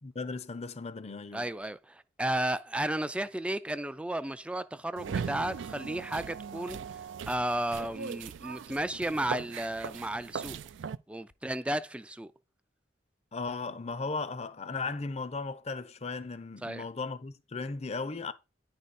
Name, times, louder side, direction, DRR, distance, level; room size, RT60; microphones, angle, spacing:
voice 1, 0.0-1.5 13.3-18.3, left 4 dB, 35° left, 0.6 m, -36 dB
voice 2, 1.3-6.8 7.3-10.6 11.1-12.3 16.6-16.9, right 1 dB, 5° right, 0.3 m, -33 dB
sound 1, 5.0-11.0, right 6 dB, 85° right, 0.4 m, -39 dB
10.0 x 4.8 x 4.2 m
head